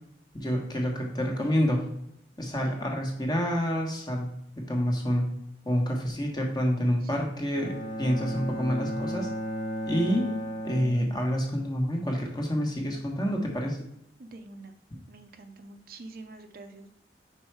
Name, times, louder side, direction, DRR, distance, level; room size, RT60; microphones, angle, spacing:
voice 1, 0.3-1.8 2.4-4.3 4.6-5.3 5.6-9.3 9.9-10.3 10.6-13.8, equal, 25° left, 1 dB, 1.2 m, -28 dB
Bowed string instrument, 7.5-11.6, equal, 90° left, 2.0 m, -35 dB
voice 2, 14.2-16.9, right 2 dB, 55° right, 7 dB, 0.6 m, -46 dB
5.4 x 4.5 x 4.6 m, 0.77 s
head